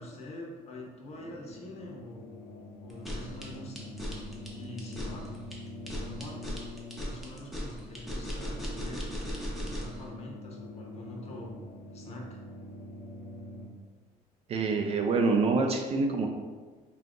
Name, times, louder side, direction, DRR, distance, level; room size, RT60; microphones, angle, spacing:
voice 1, 0.0-2.3 2.8-3.9 4.6-5.3 5.9-6.4 7.0-9.1 9.6-11.5 11.9-12.4, left 1 dB, 45° left, -1 dB, 0.7 m, -44 dB
sound 1, 1.1-13.7, left 1 dB, 85° left, 0.8 m, -45 dB
sound 2, 2.9-10.0, equal, ahead, 0.6 m, -37 dB
voice 2, 14.5-16.3, right 4 dB, 45° right, 3 dB, 0.4 m, -26 dB
2.7 x 2.4 x 3.6 m, 1.4 s
cardioid pair, 130°, 15 cm